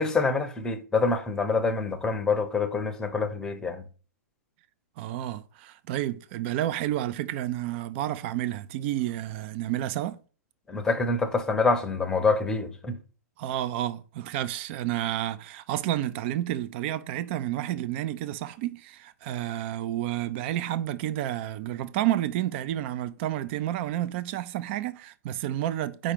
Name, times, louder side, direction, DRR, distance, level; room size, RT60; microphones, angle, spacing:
voice 1, 0.0-3.8 10.7-13.0, left 4 dB, 5° left, 0.8 m, -26 dB
voice 2, 5.0-10.2 13.4-26.1, right 13 dB, 40° right, 0.5 m, -30 dB
5.0 x 4.3 x 5.1 m
hypercardioid pair, 140°, 9 cm